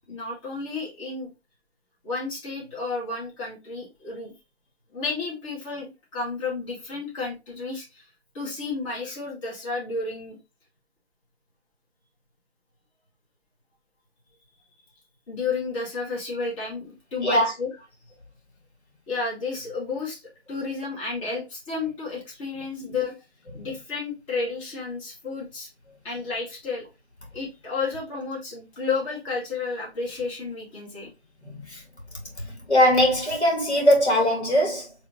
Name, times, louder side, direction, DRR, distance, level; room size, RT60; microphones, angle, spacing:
voice 1, 0.1-1.3 2.0-4.3 4.9-8.1 8.3-10.4 15.3-17.8 19.1-20.2 20.5-23.1 23.5-25.7 26.0-26.8 27.3-31.1, left 4 dB, 30° left, 2.0 m, -31 dB
voice 2, 31.4-31.8 32.4-34.9, equal, 85° left, 2.0 m, -21 dB
4.7 x 3.2 x 3.0 m
figure-of-eight pair, 135°, 33 cm